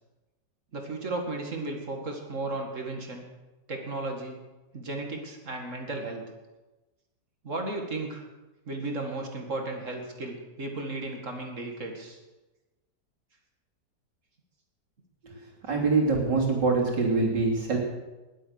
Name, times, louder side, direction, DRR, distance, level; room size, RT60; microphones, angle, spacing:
voice 1, 0.7-3.3 3.7-4.4 4.7-6.2 7.4-8.2 8.7-12.2, right 2 dB, 45° right, 2 dB, 2.4 m, -34 dB
voice 2, 15.7-17.8, right 3 dB, 85° right, -2 dB, 3.7 m, -24 dB
20.0 x 8.3 x 6.5 m, 1.1 s
omnidirectional pair, 1.9 m